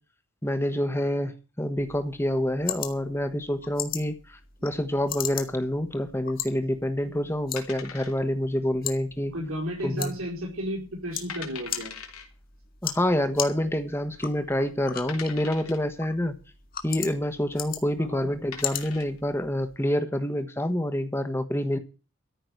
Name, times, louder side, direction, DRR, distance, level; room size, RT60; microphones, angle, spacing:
voice 1, 0.4-1.3 1.6-9.3 9.8-10.1 12.8-16.3 16.8-21.8, left 1 dB, 10° left, 1.2 m, -27 dB
sound 1, 1.8-19.8, left 10 dB, 40° left, 1.8 m, -39 dB
sound 2, 7.6-8.5 8.8-8.9 9.5-9.9 10.3-10.4 10.9-11.0 11.3-12.3 13.3-13.4 14.1-14.2 15.1-15.9 17.7-17.9 18.3-19.2, left 6 dB, 90° left, 3.3 m, -41 dB
voice 2, 9.3-11.9 18.0-18.3, equal, 75° right, 4.7 m, -33 dB
13.5 x 6.0 x 9.5 m
head